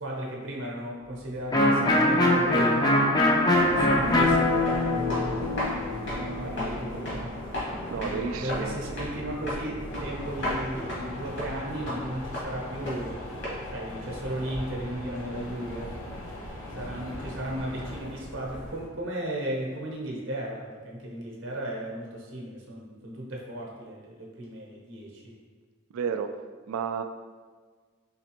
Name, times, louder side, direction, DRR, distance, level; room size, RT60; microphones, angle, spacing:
voice 1, 0.0-2.9 3.7-5.4 6.2-7.4 7.9-13.1 13.7-15.9 16.8-25.3, right 1 dB, 60° right, -2 dB, 0.7 m, -35 dB
Electric guitar, 1.5-7.1, left 1 dB, 20° left, 0.4 m, -23 dB
sound 1, 3.6-18.9, left 1 dB, 55° left, 1.3 m, -36 dB
voice 2, 7.9-8.8 25.9-26.4 26.7-27.0, right 6 dB, 80° right, 8 dB, 0.3 m, -31 dB
sound 2, 9.9-18.0, left 1 dB, 80° left, 0.8 m, -41 dB
4.0 x 3.3 x 2.9 m, 1.5 s
head